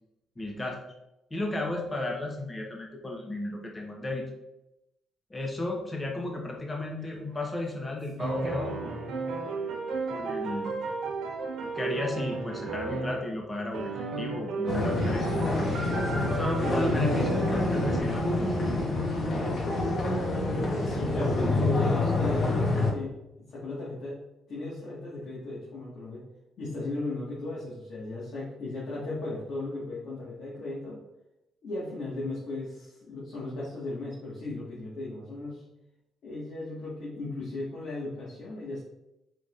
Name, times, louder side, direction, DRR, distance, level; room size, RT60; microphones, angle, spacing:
voice 1, 0.4-0.8 1.3-4.2 5.3-8.9 10.1-10.7 11.7-15.3 16.3-18.5, left 2 dB, 20° left, 1 dB, 1.0 m, -33 dB
sound 1, 7.0-13.3 13.7-18.0, right 3 dB, 75° right, 1.1 m, -34 dB
sound 2, 14.7-22.9, left 2 dB, 50° left, 1.2 m, -27 dB
voice 2, 20.8-24.2 24.5-26.2 26.6-31.0 31.6-35.6 36.2-38.8, left 2 dB, 65° left, -8 dB, 1.7 m, -36 dB
5.1 x 4.0 x 2.5 m, 0.89 s
cardioid pair, 90°, 0 cm